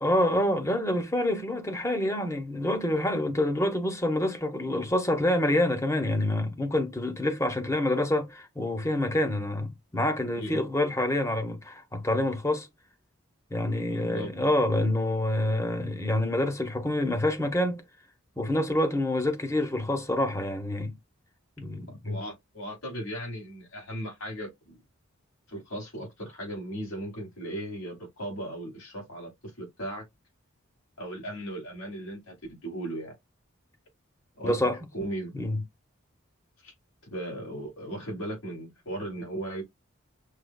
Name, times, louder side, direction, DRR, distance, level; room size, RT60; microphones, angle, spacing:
voice 1, 0.0-12.7 13.5-17.8 18.4-20.9 21.6-22.2 34.4-34.8 35.3-35.6, left 1 dB, 15° left, 0.8 m, -27 dB
voice 2, 13.9-14.3 22.0-24.8 25.5-29.3 29.6-30.0 31.0-32.3 32.6-33.1 34.4-34.5 34.9-35.3 36.6-36.7 37.1-39.6, right 1 dB, 90° left, 3.5 m, -37 dB
6.3 x 3.0 x 2.2 m
head